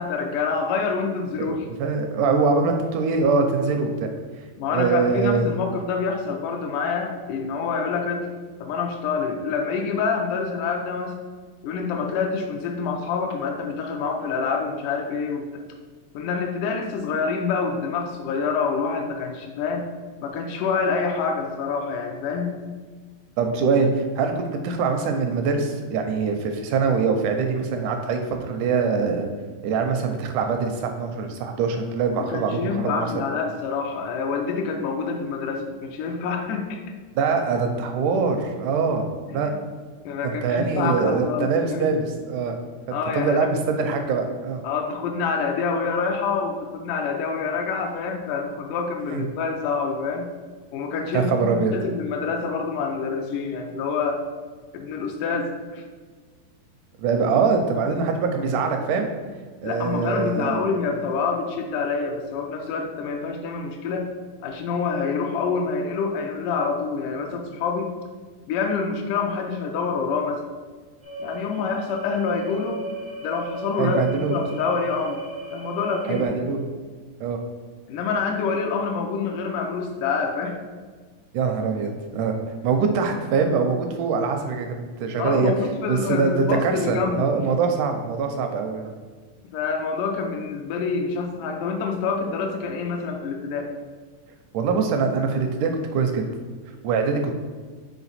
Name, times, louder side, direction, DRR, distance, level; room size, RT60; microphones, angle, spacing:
voice 1, 0.0-1.6 4.6-8.3 8.6-11.2 11.6-15.6 16.1-19.9 20.2-22.6 32.2-36.8 39.3-39.5 40.0-42.0 42.9-43.5 44.6-50.3 50.7-54.3 54.7-55.8 59.6-64.1 64.4-67.9 68.5-70.4 71.2-72.8 73.2-74.0 74.3-75.2 75.5-76.3 77.9-80.6 85.2-87.4 89.5-93.7, left 5 dB, 80° left, 2 dB, 2.0 m, -27 dB
voice 2, 1.4-4.1 4.7-5.5 23.4-29.3 29.6-33.3 37.2-39.0 39.3-39.5 40.2-42.6 43.2-44.6 49.1-49.2 51.1-51.7 57.0-59.1 59.6-60.6 73.8-74.4 76.1-76.6 77.2-77.4 81.3-82.4 82.6-85.5 85.9-88.9 94.5-96.2 96.8-97.4, right 5 dB, 80° right, 5 dB, 1.9 m, -23 dB
sound 1, 71.0-76.3, right 2 dB, 45° right, 0.6 m, -35 dB
5.9 x 4.4 x 4.1 m, 1.4 s
omnidirectional pair, 3.9 m